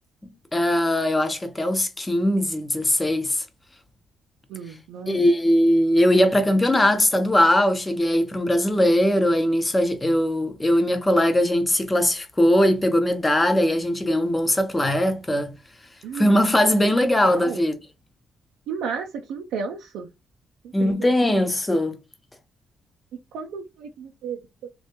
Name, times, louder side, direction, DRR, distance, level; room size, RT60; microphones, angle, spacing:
voice 1, 0.5-3.4 5.1-15.5 16.1-17.8 20.7-22.0, left 1 dB, 15° left, 0.7 m, -20 dB
voice 2, 4.5-5.2 16.0-16.3 17.2-17.7 18.7-20.1 20.8-21.0 23.3-24.7, right 6 dB, 90° right, 0.4 m, -33 dB
3.3 x 2.2 x 2.8 m
cardioid pair, 85°, 0 cm